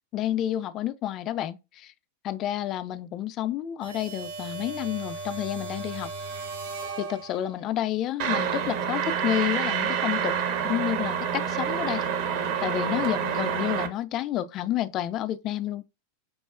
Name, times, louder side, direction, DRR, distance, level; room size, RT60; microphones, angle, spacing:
voice 1, 0.1-1.6 2.2-6.1 7.0-10.3 10.6-12.0 12.6-15.8, left 12 dB, 35° left, 0.3 m, -29 dB
sound 1, 3.8-7.7, right 3 dB, 65° right, 1.0 m, -37 dB
sound 2, 8.2-13.9, right 8 dB, 50° right, 0.6 m, -27 dB
5.4 x 2.0 x 2.3 m
figure-of-eight pair, 90°, 0 cm